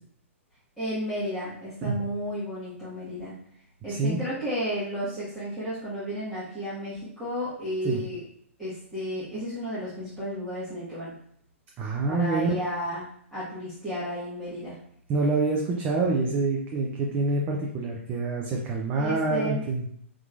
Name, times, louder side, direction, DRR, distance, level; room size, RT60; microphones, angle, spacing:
voice 1, 0.8-3.4 3.8-8.2 8.6-11.1 12.1-13.0 13.3-14.8 18.9-19.7, equal, 5° right, -14 dB, 1.3 m, -33 dB
voice 2, 3.9-4.2 7.8-8.0 11.8-12.5 15.1-19.8, right 3 dB, 25° right, -1 dB, 0.5 m, -26 dB
3.7 x 2.9 x 2.4 m, 0.66 s
hypercardioid pair, 125°, 7 cm